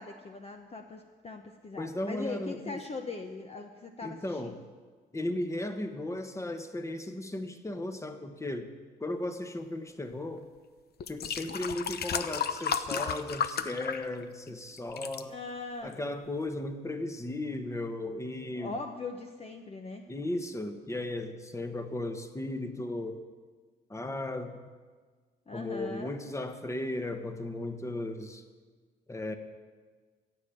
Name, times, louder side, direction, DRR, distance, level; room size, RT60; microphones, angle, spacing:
voice 1, 0.0-4.7 15.3-16.0 18.5-20.0 25.5-26.1, left 3 dB, 30° left, 4 dB, 1.0 m, -40 dB
voice 2, 1.8-2.8 4.0-4.6 5.1-8.7 9.0-10.5 11.1-15.3 15.8-18.8 20.1-23.2 23.9-24.6 25.5-28.4 29.1-29.3, left 1 dB, 15° left, 7 dB, 1.3 m, -36 dB
sound 1, 10.4-10.5 11.0-14.5 14.8-15.2 15.9-16.0, left 7 dB, 55° left, 0.8 m, -33 dB
15.5 x 7.6 x 8.4 m, 1.5 s
cardioid pair, 90°, 20 cm